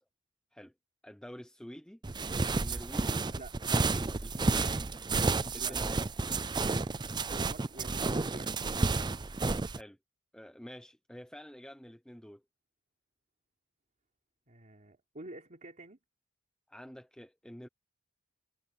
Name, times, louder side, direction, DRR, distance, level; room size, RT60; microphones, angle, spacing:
voice 1, 1.0-2.0 2.5-3.2 3.7-4.9 5.5-6.0 9.7-10.0 10.3-12.4 16.7-17.7, equal, 5° left, 0.9 m, -48 dB
sound 1, 2.0-9.8, right 3 dB, 20° right, 0.5 m, -31 dB
voice 2, 4.3-4.8 5.5-5.8 7.2-9.0 14.5-16.0, right 2 dB, 40° right, 3.6 m, -49 dB
head